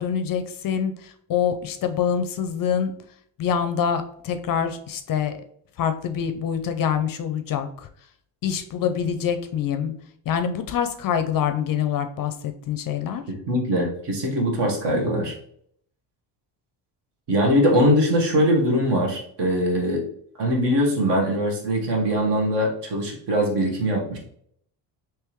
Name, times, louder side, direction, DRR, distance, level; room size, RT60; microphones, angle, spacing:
voice 1, 0.0-2.9 3.4-5.3 5.8-7.9 8.4-9.9 10.3-13.2, left 8 dB, 45° left, 8 dB, 0.5 m, -25 dB
voice 2, 13.3-15.3 17.3-20.0 20.4-24.2, equal, 60° right, 1 dB, 1.4 m, -22 dB
3.5 x 3.0 x 3.0 m, 0.65 s
cardioid pair, 95°, 48 cm